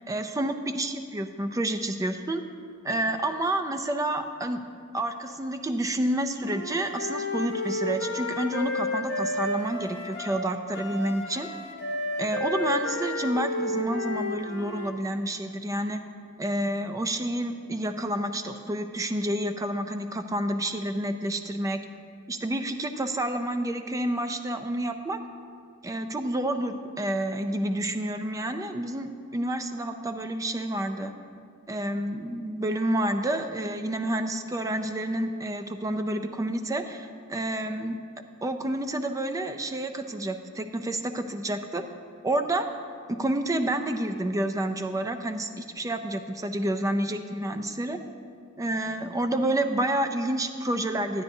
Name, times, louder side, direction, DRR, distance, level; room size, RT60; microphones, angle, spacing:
voice 1, 0.1-2.4 2.8-4.6 4.9-11.5 12.2-16.0 16.4-21.8 22.3-25.2 25.8-31.1 31.7-38.0 38.4-41.8 42.2-42.7 43.2-48.0 48.6-51.2, right 1 dB, 15° right, 8 dB, 0.4 m, -29 dB
Wind instrument woodwind instrument, 6.4-14.9, left 1 dB, 50° left, 0.9 m, -31 dB
11.0 x 9.4 x 2.6 m, 2.2 s
head